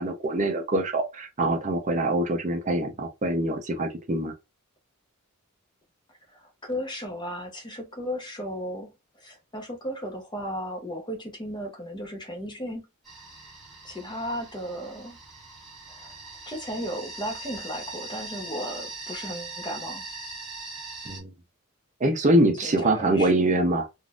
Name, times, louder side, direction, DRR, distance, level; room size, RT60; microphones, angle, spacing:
voice 1, 0.0-4.3 21.1-21.3 22.0-23.9, right 1 dB, 35° right, 0.6 m, -24 dB
voice 2, 6.3-12.8 13.8-15.2 15.9-16.1 16.5-20.0 22.6-23.3, equal, 20° left, 0.9 m, -35 dB
sound 1, 13.0-21.2, right 3 dB, ahead, 1.6 m, -41 dB
3.8 x 2.5 x 2.4 m
head